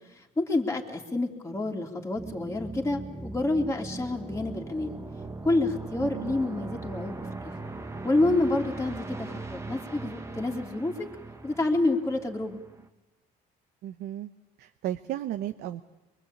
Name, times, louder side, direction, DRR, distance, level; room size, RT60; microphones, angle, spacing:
voice 1, 0.1-5.0 5.4-7.5 8.0-11.0 11.4-12.6, left 2 dB, 15° left, 0 dB, 2.8 m, -28 dB
sound 1, 2.1-12.9, right 2 dB, 15° right, 1.5 m, -40 dB
voice 2, 6.0-6.4 13.8-14.3 14.6-15.8, right 12 dB, 75° right, 8 dB, 0.9 m, -34 dB
24.0 x 23.0 x 8.6 m, 1.0 s
cardioid pair, 110°, 17 cm